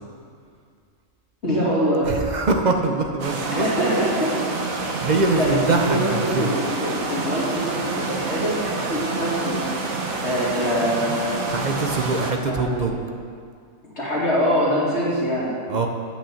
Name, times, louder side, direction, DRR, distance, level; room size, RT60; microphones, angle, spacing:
voice 1, 1.4-2.1 3.5-4.3 5.3-9.5 10.2-11.4 12.4-12.9 14.0-15.5, equal, 55° left, -7 dB, 2.7 m, -24 dB
voice 2, 2.0-3.7 5.0-6.5 11.5-13.0 15.7-15.9, right 3 dB, 45° right, 4 dB, 0.6 m, -23 dB
sound 1, 3.2-12.3, right 3 dB, 85° right, 1.4 m, -28 dB
8.7 x 5.7 x 7.0 m, 2.2 s
omnidirectional pair, 1.4 m